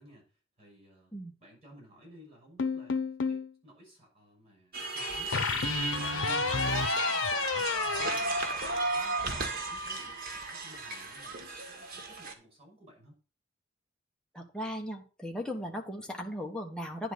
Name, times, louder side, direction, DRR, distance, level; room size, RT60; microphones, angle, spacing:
voice 1, 0.0-1.1 1.4-3.0 3.3-7.2 7.5-13.1, right 1 dB, 35° right, -1 dB, 6.0 m, -57 dB
sound 1, 2.6-3.5 5.3-9.1, left 5 dB, 85° left, 0.8 m, -31 dB
sound 2, 4.7-12.3, right 2 dB, 50° right, 1.5 m, -34 dB
voice 2, 14.3-17.1, equal, 5° left, 0 dB, 1.3 m, -37 dB
10.0 x 4.0 x 6.5 m, 0.35 s
head